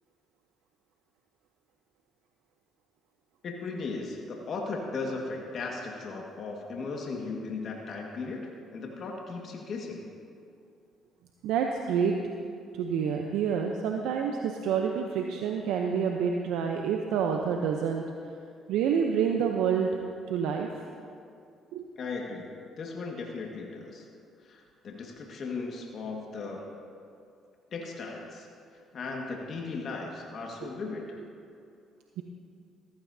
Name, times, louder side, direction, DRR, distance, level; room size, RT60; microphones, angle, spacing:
voice 1, 3.4-10.0 22.0-24.1 24.4-26.8 27.7-28.5 28.9-31.2, left 3 dB, 55° left, 0 dB, 1.7 m, -37 dB
voice 2, 11.4-12.1 12.8-18.0 18.7-19.9 20.3-20.7 21.7-21.8 32.2-32.3, right 7 dB, 80° right, 2 dB, 0.7 m, -28 dB
15.0 x 15.0 x 2.8 m, 2.4 s
supercardioid pair, 65°, 0 cm